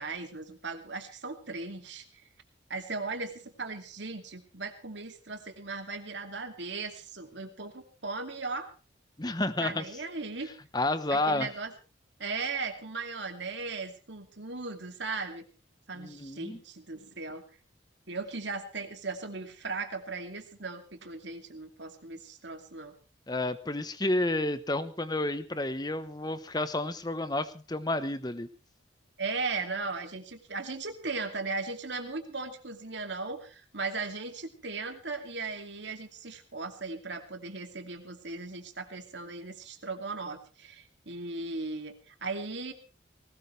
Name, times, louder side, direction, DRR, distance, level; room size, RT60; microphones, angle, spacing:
voice 1, 0.0-2.0 2.7-8.7 9.6-10.5 11.1-11.7 12.2-15.4 15.9-17.4 18.1-22.9 29.2-42.7, right 3 dB, 70° right, 6 dB, 2.6 m, -37 dB
voice 2, 9.2-9.8 10.7-11.5 16.0-16.6 23.3-28.5, left 2 dB, 20° left, 12 dB, 0.9 m, -30 dB
19.5 x 18.5 x 3.3 m, 0.34 s
head